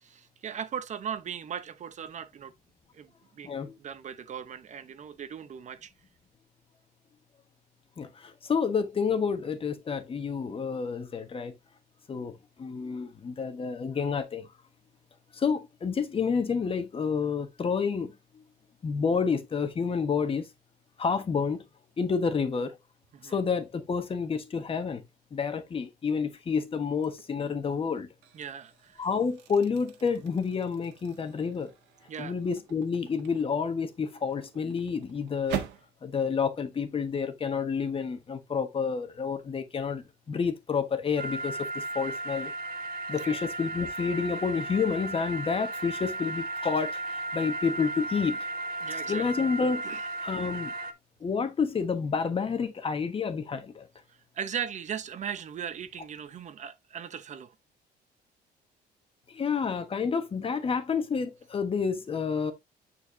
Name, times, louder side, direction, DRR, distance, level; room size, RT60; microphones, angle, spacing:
voice 1, 0.0-2.5 2.9-5.9 23.1-23.3 28.3-29.0 32.1-32.3 43.2-43.4 48.8-49.2 49.8-50.1 54.3-57.5, right 8 dB, 45° right, 0.9 m, -38 dB
voice 2, 8.0-11.5 12.1-14.5 15.3-18.4 18.8-20.5 21.0-21.6 22.0-22.7 23.2-25.0 25.3-28.1 29.0-31.7 32.2-35.6 36.0-42.5 43.1-48.5 49.1-49.8 50.2-50.7 51.2-53.9 59.3-62.5, left 5 dB, 35° left, 1.4 m, -29 dB
sound 1, 27.0-27.4 27.9-35.9, right 11 dB, 85° right, 1.5 m, -43 dB
sound 2, 41.2-50.9, right 2 dB, 60° right, 1.5 m, -35 dB
9.2 x 4.7 x 2.8 m
cardioid pair, 110°, 17 cm